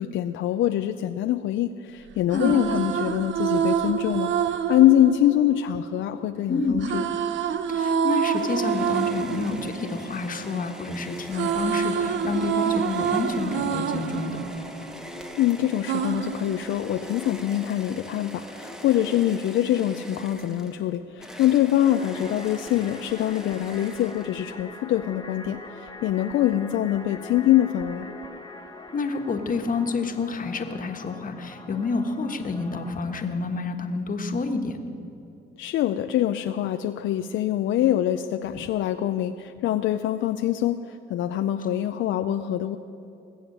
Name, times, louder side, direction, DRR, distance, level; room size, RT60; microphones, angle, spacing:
voice 1, 0.0-7.0 15.4-28.1 35.6-42.8, left 12 dB, 75° left, 8 dB, 0.5 m, -24 dB
sound 1, 2.1-6.2 6.8-10.8 11.1-15.4 15.9-17.3, right 8 dB, 70° right, 0.7 m, -27 dB
voice 2, 6.5-6.8 7.7-14.4 28.9-34.8, left 4 dB, 45° left, 6 dB, 1.4 m, -28 dB
sound 2, 8.3-24.6, equal, 5° right, 1.2 m, -41 dB
sound 3, 21.9-33.2, left 3 dB, 20° left, 1.6 m, -43 dB
20.0 x 7.8 x 7.7 m, 2.7 s
cardioid pair, 90°, 20 cm